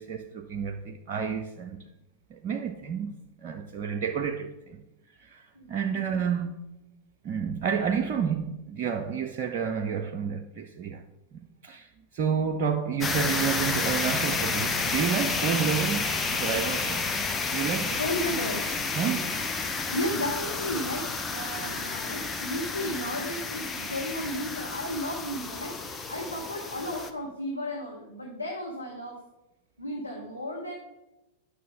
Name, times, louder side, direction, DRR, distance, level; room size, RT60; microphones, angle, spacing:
voice 1, 0.0-1.8 2.3-3.1 3.4-4.8 5.2-5.4 5.7-6.6 7.2-11.0 11.3-17.1 17.5-18.0 19.0-19.3, right 7 dB, 45° right, 0.5 m, -30 dB
voice 2, 5.5-6.1 18.0-18.6 19.6-29.2 29.8-30.7, left 1 dB, 85° left, 1.2 m, -34 dB
sound 1, 13.0-27.1, left 4 dB, 15° left, 0.7 m, -30 dB
9.3 x 6.3 x 3.8 m
figure-of-eight pair, 90°, 0 cm